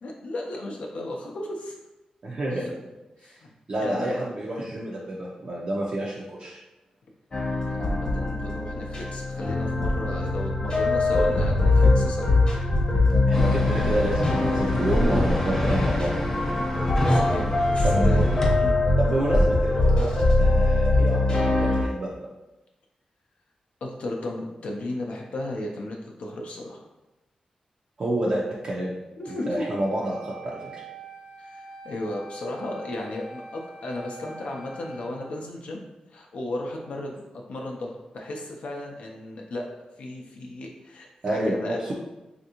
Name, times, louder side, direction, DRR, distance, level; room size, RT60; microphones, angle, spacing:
voice 1, 0.0-1.7 2.5-2.8 3.2-3.5 3.8-4.3 7.6-12.3 16.8-18.8 23.8-26.8 29.2-29.7 31.4-35.8 36.1-37.2 37.5-39.7 40.0-41.9, left 1 dB, 75° left, 0 dB, 0.4 m, -34 dB
voice 2, 2.2-2.7 3.2-3.4 3.7-6.6 13.3-16.1 17.8-18.1 19.0-21.2 21.4-22.3 28.0-29.0 29.5-30.8 41.2-41.9, right 1 dB, 50° right, -4 dB, 0.4 m, -29 dB
sound 1, 7.3-21.8, left 2 dB, 40° left, 0.9 m, -22 dB
sound 2, 13.3-18.5, left 1 dB, 15° left, 0.7 m, -27 dB
Wind instrument woodwind instrument, 29.2-35.2, right 3 dB, 90° right, 1.1 m, -44 dB
3.3 x 2.5 x 2.8 m, 1.0 s
wide cardioid pair, 105°, 2 cm